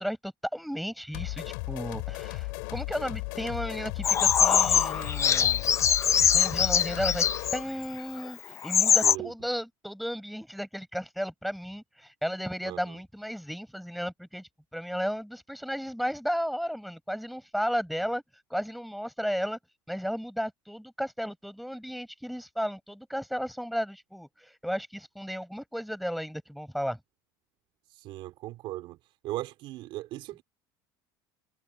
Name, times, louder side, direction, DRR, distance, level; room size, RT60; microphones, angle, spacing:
voice 1, 0.0-5.7 6.3-18.2 18.5-19.6 19.9-27.0, equal, ahead, 7.9 m, -34 dB
sound 1, 1.1-7.7, left 32 dB, 80° left, 4.3 m, -36 dB
Bird vocalization bird call bird song, 4.0-7.6 8.2-8.3 8.6-9.1, left 8 dB, 30° left, 0.8 m, -23 dB
voice 2, 27.9-29.0 29.2-30.4, right 16 dB, 60° right, 3.0 m, -37 dB
supercardioid pair, 115°, 10 cm